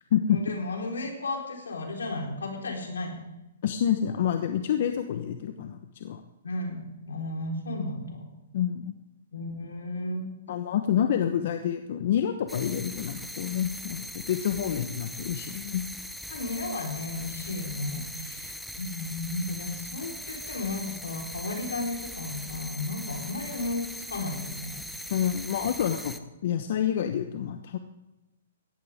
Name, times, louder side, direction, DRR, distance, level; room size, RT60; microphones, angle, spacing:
voice 1, 0.3-3.2 6.4-8.2 9.3-10.3 16.3-25.1, left 2 dB, 90° left, 1 dB, 4.3 m, -34 dB
voice 2, 3.6-6.2 8.5-8.9 10.5-15.9 25.1-26.1 26.4-27.8, left 9 dB, 55° left, 7 dB, 1.1 m, -28 dB
sound 1, 12.5-26.2, equal, ahead, 0.9 m, -40 dB
17.5 x 13.5 x 3.7 m, 0.98 s
hypercardioid pair, 140°, 0 cm